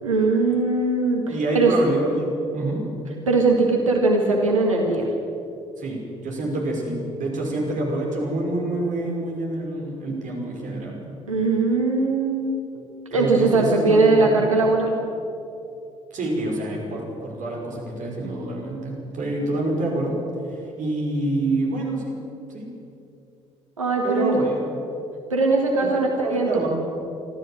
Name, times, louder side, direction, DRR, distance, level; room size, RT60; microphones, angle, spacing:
voice 1, 0.0-1.7 3.3-5.0 11.3-12.6 13.1-15.0 23.8-24.4 25.3-26.7, right 3 dB, 85° right, 0 dB, 1.8 m, -20 dB
voice 2, 1.3-2.3 2.5-2.8 5.8-11.0 13.1-14.5 16.1-20.2 20.8-22.2 22.5-22.7 24.0-24.8 25.9-26.7, right 2 dB, 50° right, -1 dB, 5.8 m, -27 dB
25.0 x 13.5 x 7.7 m, 2.7 s
figure-of-eight pair, 50°, 16 cm